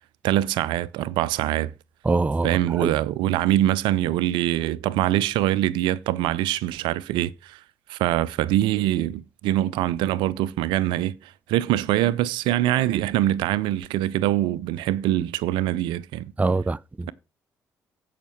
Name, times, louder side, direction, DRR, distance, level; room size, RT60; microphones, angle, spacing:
voice 1, 0.2-1.7 2.4-7.6 7.9-16.3, right 13 dB, 75° right, 0.6 m, -24 dB
voice 2, 2.0-2.9 16.4-17.1, right 3 dB, 20° right, 0.5 m, -24 dB
15.0 x 5.8 x 4.5 m
hypercardioid pair, 50°, 8 cm